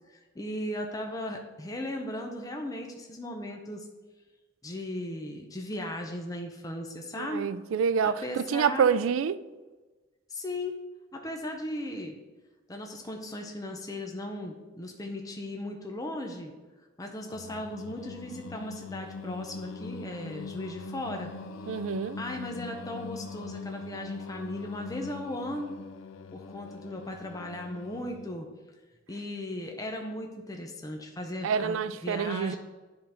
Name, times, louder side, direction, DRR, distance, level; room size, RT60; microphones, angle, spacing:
voice 1, 0.1-3.9 4.6-7.5 8.0-8.9 10.3-10.7 11.1-12.2 12.7-16.5 17.0-21.3 22.2-25.7 26.3-28.5 29.1-31.8 32.0-32.6, left 1 dB, 20° left, 0.6 m, -37 dB
voice 2, 7.2-9.4 21.7-22.2 31.4-32.6, right 6 dB, 80° right, 0.3 m, -27 dB
Singing, 17.3-28.5, left 4 dB, 85° left, 0.4 m, -42 dB
9.9 x 3.8 x 4.3 m
head